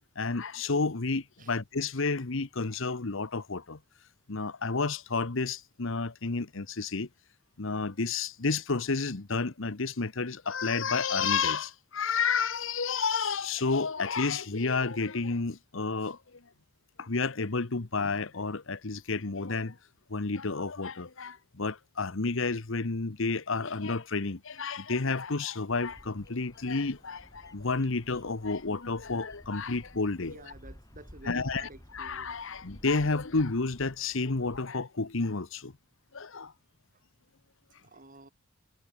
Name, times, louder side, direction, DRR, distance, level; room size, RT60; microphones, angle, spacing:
voice 1, 0.0-3.8 4.3-7.1 7.6-16.4 17.0-19.8 20.1-30.5 31.2-35.7 36.1-36.5, left 4 dB, 65° left, 1.1 m, -31 dB
Bird vocalization bird call bird song, 25.7-34.7, equal, 20° left, 6.8 m, -53 dB
voice 2, 30.2-32.4 37.8-38.3, right 2 dB, 40° right, 7.5 m, -51 dB
head